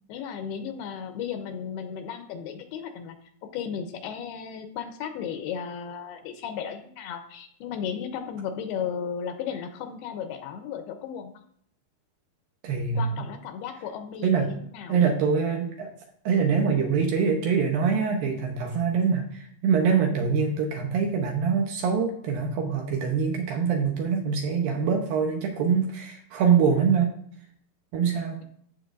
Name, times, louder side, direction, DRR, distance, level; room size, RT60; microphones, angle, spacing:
voice 1, 0.1-3.2 3.5-11.4 13.0-15.0, left 7 dB, 80° left, 6 dB, 2.6 m, -35 dB
voice 2, 12.6-13.0 14.2-14.5 14.9-15.9 16.3-27.1 27.9-28.4, right 6 dB, 75° right, 2 dB, 2.3 m, -24 dB
14.0 x 6.0 x 2.6 m, 0.65 s
omnidirectional pair, 4.8 m